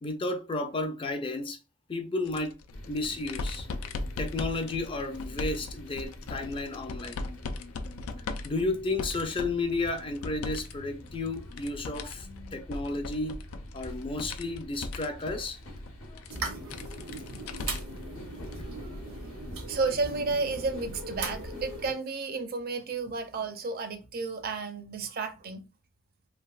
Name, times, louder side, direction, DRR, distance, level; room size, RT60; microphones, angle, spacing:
voice 1, 0.0-1.6 1.9-2.5 2.9-3.7 4.2-7.3 8.4-13.4 13.7-15.6, left 2 dB, 25° left, 0.4 m, -32 dB
sound 1, 2.2-10.7 11.0-18.0 18.4-18.5 19.8-19.9, left 3 dB, 90° left, 0.4 m, -39 dB
sound 2, 2.7-21.9, left 1 dB, 70° left, 1.0 m, -46 dB
sound 3, 16.3-21.9, right 3 dB, 90° right, 0.9 m, -39 dB
voice 2, 19.7-25.7, right 4 dB, 45° right, 0.5 m, -32 dB
3.3 x 2.6 x 2.3 m
head